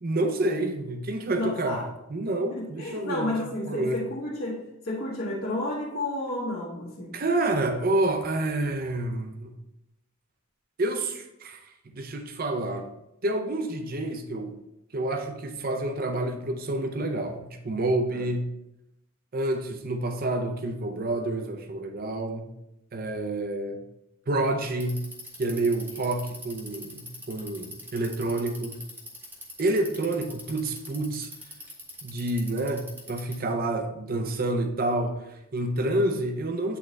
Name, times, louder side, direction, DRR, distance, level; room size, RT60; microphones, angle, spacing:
voice 1, 0.0-1.8 2.1-3.3 3.7-4.0 7.1-9.5 10.8-12.9 13.2-14.6 14.9-18.5 19.3-22.5 22.9-23.8 24.3-25.0 25.4-27.0 27.3-28.8 29.6-31.3 32.0-36.8, right 2 dB, 45° right, 6 dB, 0.6 m, -28 dB
voice 2, 1.3-1.8 2.5-7.1 18.1-18.3, left 1 dB, 65° left, -9 dB, 1.5 m, -31 dB
Bicycle, 24.7-33.5, equal, 10° right, 1.1 m, -43 dB
8.4 x 3.8 x 3.2 m, 0.88 s
head